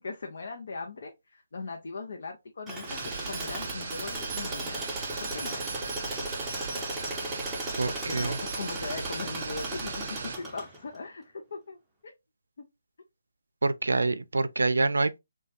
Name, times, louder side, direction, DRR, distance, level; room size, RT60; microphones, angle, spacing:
voice 1, 0.0-4.8 5.2-5.5 7.8-11.8 12.0-12.1, left 3 dB, 60° left, 0.6 m, -39 dB
Tools, 2.7-11.0, right 2 dB, 10° right, 0.6 m, -37 dB
sound 1, 2.9-10.4, right 4 dB, 50° right, 0.7 m, -37 dB
voice 2, 7.8-8.4 13.6-15.2, right 3 dB, 85° right, 0.4 m, -26 dB
3.2 x 2.2 x 2.7 m
hypercardioid pair, 155°, 0 cm